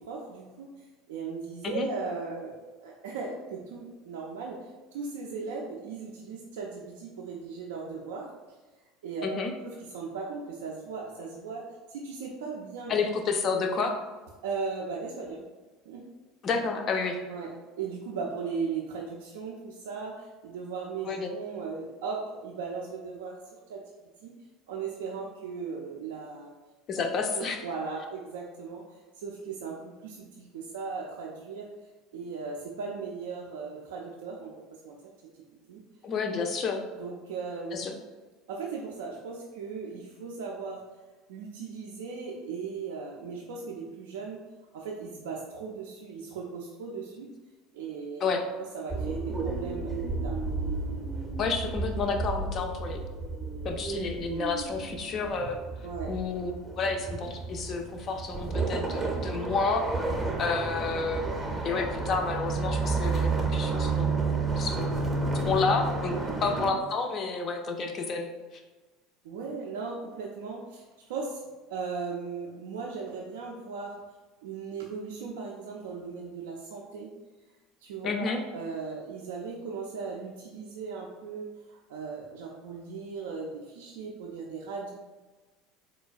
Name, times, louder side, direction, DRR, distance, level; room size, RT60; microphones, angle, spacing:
voice 1, 0.0-8.3 9.0-12.9 14.4-15.4 15.9-16.1 17.3-23.4 23.7-23.8 24.2-24.3 24.7-26.5 27.3-31.7 32.1-35.8 37.0-37.8 38.5-40.9 41.3-44.5 44.7-47.3 47.7-48.2 48.7-50.4 55.8-56.2 66.2-66.4 69.2-71.4 71.7-74.0 74.4-77.1 77.8-84.9, right 5 dB, 65° right, -2 dB, 0.3 m, -37 dB
voice 2, 12.9-13.9 16.4-17.2 21.1-21.3 26.9-27.6 36.0-36.8 37.7-37.9 48.2-48.4 51.4-53.0 53.6-55.6 56.1-59.9 60.4-61.3 61.6-65.1 65.4-68.6 78.0-78.4, left 4 dB, 40° left, 4 dB, 0.4 m, -30 dB
sound 1, 48.9-66.7, right 3 dB, 15° right, 0.6 m, -31 dB
3.9 x 2.2 x 2.3 m, 1.2 s
figure-of-eight pair, 70°, 0 cm